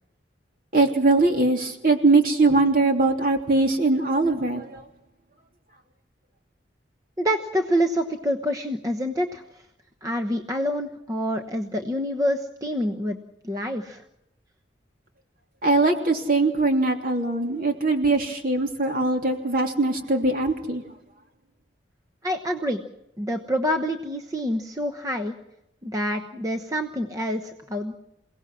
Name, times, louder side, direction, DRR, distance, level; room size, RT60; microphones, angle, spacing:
voice 1, 0.7-4.8 15.6-20.8, right 3 dB, 50° right, 3 dB, 3.1 m, -21 dB
voice 2, 7.2-9.4 10.0-13.2 13.4-14.0 22.2-22.8 23.2-25.3 25.8-27.9, equal, 20° right, 5 dB, 1.0 m, -27 dB
28.5 x 18.0 x 6.3 m, 0.84 s
head